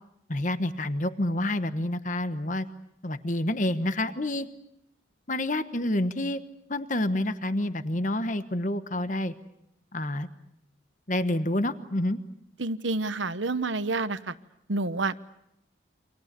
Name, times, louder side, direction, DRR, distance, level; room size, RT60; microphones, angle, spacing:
voice 1, 0.3-2.7 3.0-4.5 5.3-6.4 6.7-9.3 9.9-10.3 11.1-12.2, left 1 dB, 40° left, 11 dB, 1.2 m, -28 dB
voice 2, 12.6-14.3 14.7-15.2, right 3 dB, 75° right, 13 dB, 1.0 m, -28 dB
29.5 x 26.0 x 6.8 m, 0.79 s
head